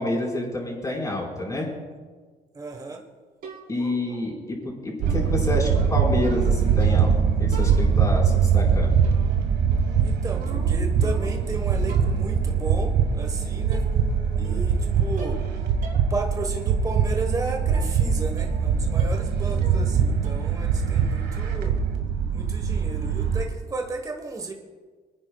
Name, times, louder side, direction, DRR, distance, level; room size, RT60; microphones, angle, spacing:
voice 1, 0.0-1.7 3.7-7.1 7.4-8.9, left 2 dB, 20° left, -3 dB, 4.7 m, -28 dB
voice 2, 2.5-3.0 10.0-13.8 14.3-15.4 16.1-21.8 22.3-24.5, right 3 dB, 20° right, 3 dB, 1.3 m, -34 dB
sound 1, 3.4-4.0 5.1-7.2 7.5-8.2 9.0-9.4 9.7-11.5 11.9-12.3 13.2-13.3 13.7-14.2 14.4-14.8 15.2-15.5 15.8-16.1 16.5-16.6 17.7-18.0 18.4-18.7 19.0-19.3 19.6-20.0 20.2-20.6, right 3 dB, 60° right, 4.3 m, -41 dB
sound 2, 5.0-23.4, right 6 dB, 80° right, 1.6 m, -22 dB
28.5 x 9.8 x 2.4 m, 1.4 s
cardioid pair, 110°, 17 cm